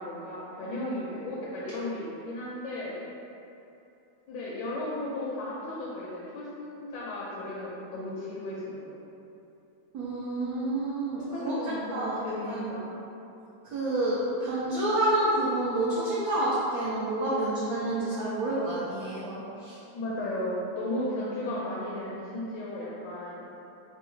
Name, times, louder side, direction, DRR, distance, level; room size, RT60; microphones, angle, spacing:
voice 1, 0.0-3.0 4.3-8.9 11.2-12.0 12.2-12.9 19.9-23.4, left 1 dB, 75° left, -7 dB, 1.2 m, -35 dB
voice 2, 9.9-12.7 13.7-19.8, right 1 dB, 85° right, -7 dB, 0.8 m, -29 dB
3.8 x 2.1 x 3.8 m, 2.8 s
omnidirectional pair, 2.1 m